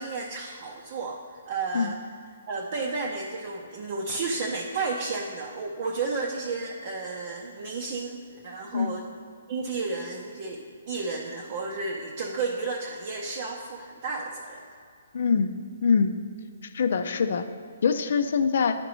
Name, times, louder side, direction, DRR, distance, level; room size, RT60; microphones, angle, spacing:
voice 1, 0.0-2.0 2.5-9.1 9.5-14.7, right 4 dB, 45° right, -1 dB, 0.6 m, -32 dB
voice 2, 15.1-15.5 15.8-16.1 16.7-17.4 17.8-18.7, left 6 dB, 60° left, 9 dB, 0.5 m, -23 dB
10.0 x 5.1 x 3.1 m, 2.3 s
hypercardioid pair, 155°, 0 cm